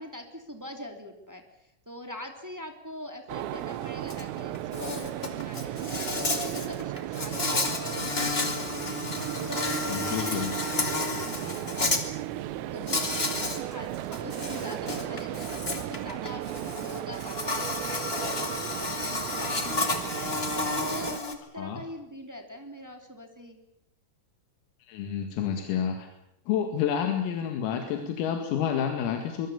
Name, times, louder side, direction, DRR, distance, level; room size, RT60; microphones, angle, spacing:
voice 1, 0.0-8.9 9.3-11.8 12.7-23.6, left 1 dB, 10° right, 5 dB, 1.1 m, -43 dB
sound 1, 3.3-21.2, right 13 dB, 85° right, 3.7 m, -35 dB
Insect, 4.1-4.2 4.5-12.0 12.9-13.6 13.9-21.3, left 3 dB, 65° left, 0.5 m, -31 dB
voice 2, 9.9-10.5 21.6-21.8 24.9-26.1 26.5-29.5, left 8 dB, 90° left, 5 dB, 4.8 m, -29 dB
24.5 x 23.0 x 7.1 m, 0.79 s
omnidirectional pair, 5.9 m